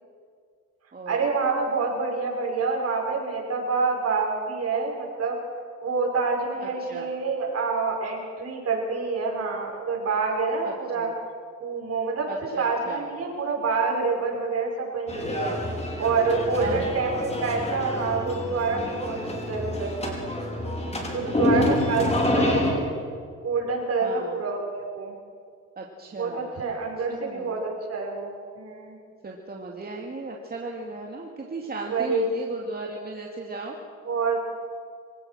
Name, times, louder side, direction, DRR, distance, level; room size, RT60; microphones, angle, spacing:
voice 1, 1.1-5.4 5.8-11.1 11.6-12.3 12.6-15.6 16.0-20.2 21.0-22.9 23.4-25.1 26.2-29.0 31.8-32.3 34.0-34.4, right 4 dB, 55° right, 0 dB, 6.4 m, -27 dB
voice 2, 6.6-7.1 10.6-11.1 12.3-13.0 16.6-16.8 17.1-17.2 21.3-21.8 22.1-22.4 24.0-24.4 25.8-26.5 27.1-27.6 29.2-33.8, right 3 dB, 30° right, 0 dB, 2.5 m, -37 dB
sound 1, 15.1-22.7, left 1 dB, 20° left, 5.2 m, -27 dB
25.5 x 17.5 x 6.5 m, 2.2 s
cardioid pair, 90°, 30 cm